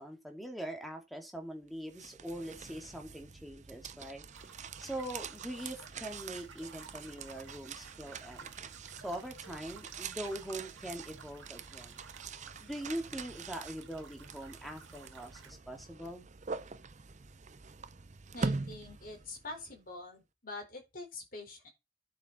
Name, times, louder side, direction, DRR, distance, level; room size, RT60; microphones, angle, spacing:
voice 1, 0.0-4.2 4.8-8.5 9.0-12.0 12.6-16.3, right 1 dB, ahead, 2.2 m, -42 dB
sound 1, 1.7-19.7, right 4 dB, 35° right, 0.6 m, -44 dB
sound 2, 4.3-15.5, right 5 dB, 70° right, 2.0 m, -54 dB
voice 2, 18.3-21.7, left 2 dB, 45° left, 4.9 m, -45 dB
11.0 x 7.8 x 4.3 m
head